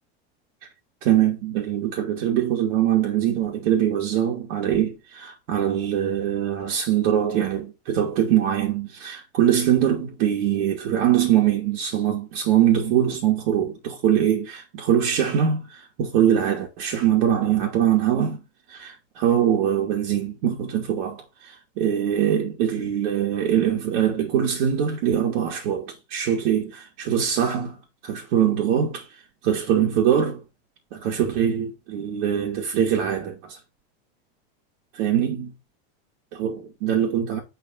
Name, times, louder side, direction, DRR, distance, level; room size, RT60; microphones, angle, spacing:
voice 1, 1.0-18.4 18.7-27.8 28.0-29.1 29.4-30.4 30.9-33.6 35.0-35.5 36.3-37.4, right 10 dB, 65° right, 2.6 m, -23 dB
8.0 x 4.5 x 5.8 m
supercardioid pair, 150°, 30 cm